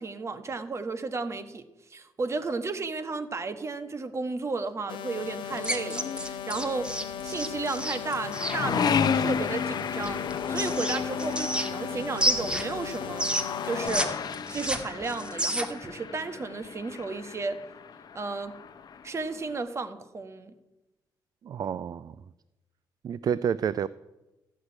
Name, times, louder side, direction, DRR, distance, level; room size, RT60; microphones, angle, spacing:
voice 1, 0.0-1.6 1.9-6.9 7.2-13.3 13.6-14.2 14.5-17.6 18.1-18.6 19.0-20.5, right 3 dB, 35° right, 10 dB, 1.2 m, -33 dB
sound 1, 4.9-13.9, left 8 dB, 80° left, 1.1 m, -38 dB
sound 2, 5.2-19.6, left 6 dB, 55° left, 0.9 m, -33 dB
sound 3, 5.6-8.6 10.0-11.9 12.2-14.1 14.3-15.9, right 1 dB, 10° right, 1.5 m, -30 dB
voice 2, 21.4-22.2 23.0-23.9, right 8 dB, 50° right, 17 dB, 0.4 m, -29 dB
14.5 x 6.4 x 9.6 m, 1.0 s
cardioid pair, 105°, 8 cm